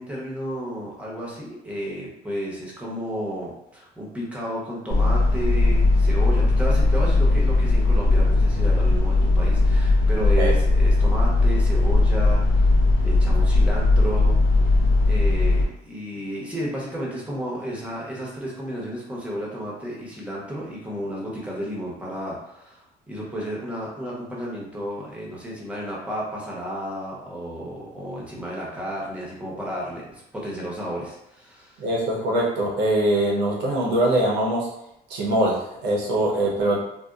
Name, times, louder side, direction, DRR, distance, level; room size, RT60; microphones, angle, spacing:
voice 1, 0.0-14.7 15.0-31.8, equal, 5° right, -5 dB, 0.8 m, -32 dB
sound 1, 4.9-15.6, left 2 dB, 85° left, 0.7 m, -18 dB
voice 2, 31.8-34.7 35.1-36.8, right 1 dB, 90° right, -3 dB, 0.8 m, -22 dB
2.7 x 2.1 x 2.4 m, 0.81 s
cardioid pair, 110°, 17 cm